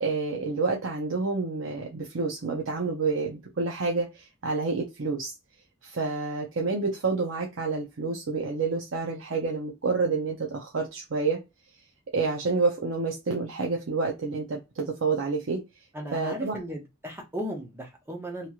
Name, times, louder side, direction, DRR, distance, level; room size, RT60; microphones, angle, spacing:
voice 1, 0.0-5.3 5.8-11.4 12.1-15.6 16.1-16.5, right 4 dB, 70° right, 0.6 m, -28 dB
voice 2, 15.9-18.5, equal, 10° right, 0.8 m, -36 dB
3.0 x 2.8 x 2.3 m
head